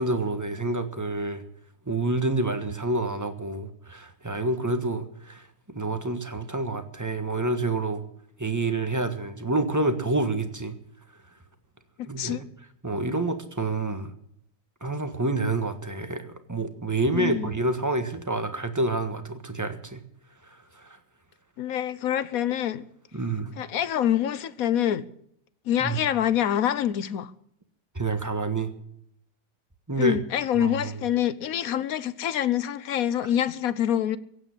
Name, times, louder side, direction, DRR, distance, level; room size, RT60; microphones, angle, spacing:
voice 1, 0.0-1.4 1.8-8.0 8.4-10.8 12.1-12.5 12.8-14.1 14.8-20.0 20.4-21.0 23.1-23.6 25.8-26.0 27.9-28.7 29.9-30.2 30.5-31.0, right 2 dB, 10° right, 1.4 m, -28 dB
voice 2, 12.0-12.4 17.1-17.5 21.6-22.8 23.6-25.1 25.7-27.3 30.0-34.2, left 10 dB, 60° left, 1.1 m, -26 dB
16.5 x 8.9 x 9.9 m
omnidirectional pair, 1.9 m